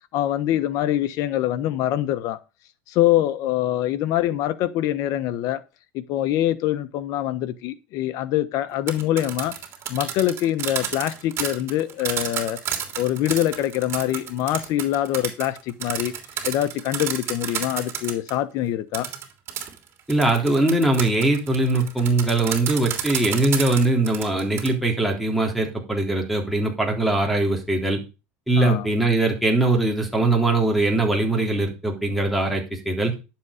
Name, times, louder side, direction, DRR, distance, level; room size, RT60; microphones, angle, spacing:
voice 1, 0.1-2.4 2.9-5.6 5.9-9.5 9.9-12.6 13.0-16.1 16.4-19.1 28.5-28.9, left 13 dB, 55° left, 1.2 m, -24 dB
sound 1, 8.7-18.4 18.9-24.7, right 9 dB, 40° right, 3.2 m, -31 dB
voice 2, 20.1-28.0 28.5-33.1, right 2 dB, ahead, 3.4 m, -21 dB
11.5 x 7.5 x 5.1 m
supercardioid pair, 125°, 7 cm